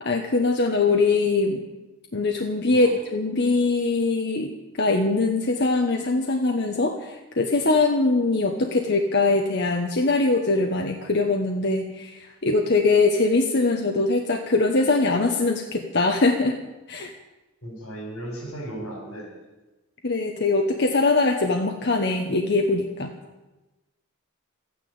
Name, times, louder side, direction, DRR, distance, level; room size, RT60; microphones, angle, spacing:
voice 1, 0.0-1.6 2.1-16.5 16.9-17.1 20.0-23.1, left 3 dB, 50° left, 3 dB, 1.1 m, -22 dB
voice 2, 17.6-19.3, right 1 dB, 85° left, 1 dB, 6.5 m, -36 dB
13.5 x 9.7 x 8.8 m, 1.1 s
head